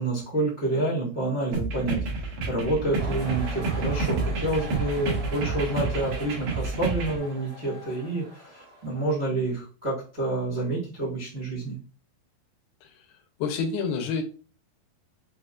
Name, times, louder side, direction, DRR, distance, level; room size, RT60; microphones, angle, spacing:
voice 1, 0.0-11.8, right 2 dB, 85° right, -9 dB, 0.4 m, -28 dB
sound 1, 1.5-7.2, right 4 dB, 65° right, 2.1 m, -29 dB
sound 2, 3.0-9.3, equal, 50° right, 1.9 m, -42 dB
voice 2, 13.4-14.2, left 5 dB, 90° left, 4 dB, 2.6 m, -28 dB
5.8 x 2.2 x 2.4 m, 0.37 s
omnidirectional pair, 4.1 m